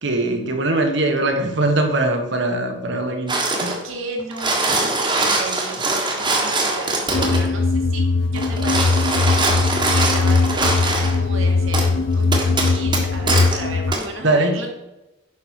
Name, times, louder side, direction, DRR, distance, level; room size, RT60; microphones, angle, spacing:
voice 1, 0.0-3.8 14.2-14.5, right 2 dB, 55° right, 4 dB, 1.4 m, -21 dB
sound 1, 3.3-3.8 4.2-7.5 8.3-11.2 11.7-11.9 12.3-13.6 13.9-14.0, right 2 dB, 20° right, 1.6 m, -22 dB
voice 2, 3.8-8.0 8.3-14.7, right 2 dB, 75° right, 1 dB, 2.1 m, -34 dB
sound 2, 7.1-14.0, left 3 dB, 60° left, 0.5 m, -20 dB
9.7 x 6.1 x 4.6 m, 0.98 s
head